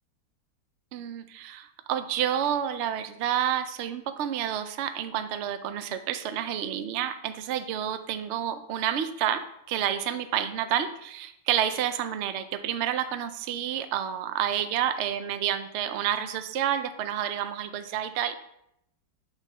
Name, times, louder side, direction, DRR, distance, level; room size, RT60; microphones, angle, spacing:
voice 1, 0.9-9.4 9.7-18.4, right 10 dB, 85° right, 9 dB, 0.6 m, -29 dB
8.2 x 3.6 x 3.9 m, 0.76 s
omnidirectional pair, 1.8 m